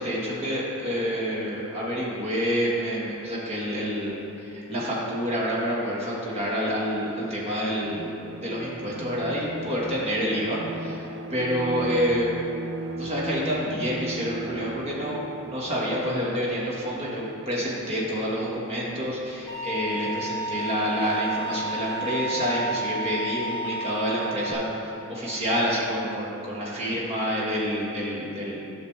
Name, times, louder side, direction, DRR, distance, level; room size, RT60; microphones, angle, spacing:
voice 1, 0.0-8.1 8.4-12.3 12.9-28.6, equal, 30° right, -6 dB, 1.6 m, -28 dB
Bowed string instrument, 7.7-16.2, right 3 dB, 80° right, 0.5 m, -37 dB
Bowed string instrument 2, 19.5-24.5, right 1 dB, 15° left, 2.1 m, -31 dB
12.0 x 6.4 x 3.4 m, 2.7 s
head